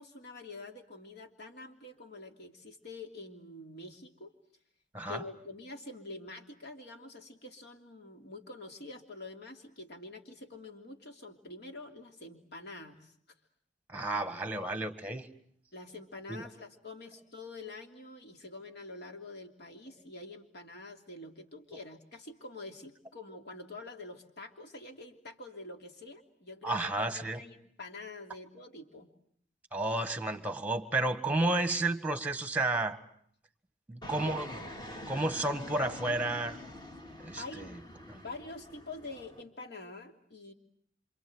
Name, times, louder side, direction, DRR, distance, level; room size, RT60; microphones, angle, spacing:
voice 1, 0.0-4.3 5.1-13.1 15.7-29.1 34.1-34.4 37.4-37.8 38.1-40.5, left 2 dB, 60° left, 4 dB, 3.1 m, -46 dB
voice 2, 13.9-15.3 16.3-16.5 26.6-27.4 29.7-33.0 33.9-34.5 34.9-36.6 37.2-37.7 38.1-38.2, right 2 dB, 10° right, 10 dB, 1.7 m, -32 dB
Fixed-wing aircraft airplane, 34.0-39.4, left 1 dB, 25° left, 2.5 m, -45 dB
27.5 x 27.0 x 7.9 m, 0.66 s
head